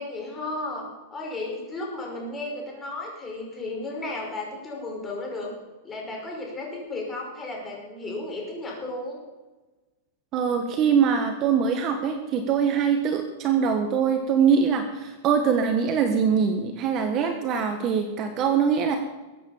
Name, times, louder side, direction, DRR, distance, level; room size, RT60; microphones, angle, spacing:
voice 1, 0.0-5.5 5.8-9.2, left 2 dB, 15° left, -1 dB, 5.4 m, -34 dB
voice 2, 10.3-19.0, right 6 dB, 30° right, 5 dB, 1.5 m, -23 dB
22.0 x 9.0 x 7.3 m, 1.2 s
supercardioid pair, 160°, 0 cm